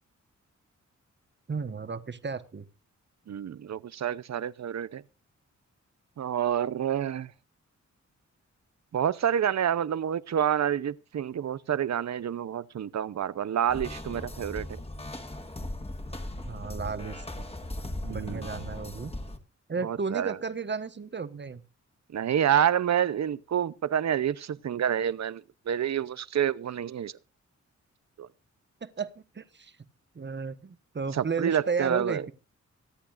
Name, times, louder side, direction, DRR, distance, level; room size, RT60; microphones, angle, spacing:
voice 1, 1.5-2.7 16.4-17.2 18.1-19.1 19.7-21.6 28.8-29.7 30.1-32.3, right 5 dB, 40° right, 1.3 m, -33 dB
voice 2, 3.3-5.0 6.2-7.3 8.9-14.8 18.0-18.5 19.8-20.4 22.1-27.1 28.2-28.3 31.1-32.2, right 9 dB, 65° right, 0.8 m, -28 dB
sound 1, 13.7-19.4, left 1 dB, 20° left, 1.9 m, -38 dB
25.0 x 8.6 x 2.6 m
cardioid pair, 75°, 29 cm